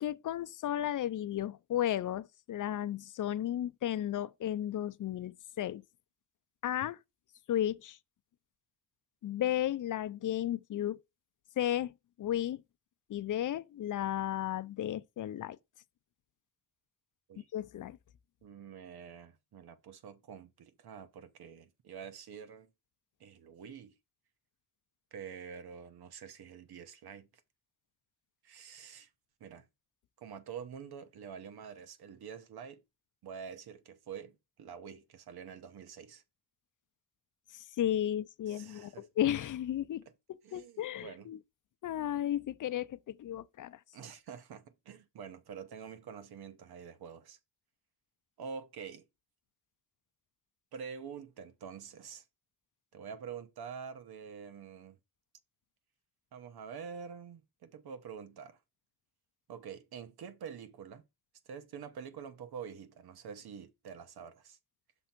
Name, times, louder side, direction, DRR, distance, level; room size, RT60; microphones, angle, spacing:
voice 1, 0.0-5.8 6.6-7.0 7.5-8.0 9.2-11.0 11.6-12.6 13.1-15.6 17.5-18.0 37.5-40.0 40.5-41.4 41.8-43.8, left 11 dB, 55° left, 0.5 m, -34 dB
voice 2, 18.4-22.7 23.2-23.9 25.1-27.3 28.4-29.1 29.4-29.7 30.2-32.8 33.2-36.2 38.5-39.1 40.4-41.3 43.9-47.4 48.4-49.0 50.7-52.2 52.9-55.0 56.3-58.6 59.5-61.0 61.5-64.6, right 7 dB, 85° right, 1.1 m, -47 dB
6.2 x 3.5 x 5.9 m
wide cardioid pair, 120°, 37 cm